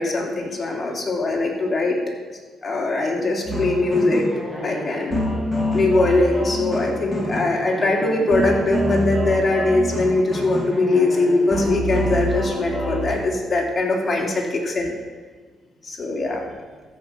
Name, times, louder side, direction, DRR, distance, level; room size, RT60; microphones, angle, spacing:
voice 1, 0.0-2.0 2.6-4.3 4.6-5.2 5.7-14.9 15.8-16.5, left 2 dB, 30° left, -1 dB, 3.1 m, -21 dB
sound 1, 3.4-13.2, equal, 5° left, 4.2 m, -27 dB
13.5 x 5.8 x 7.6 m, 1.5 s
cardioid pair, 90°, 0 cm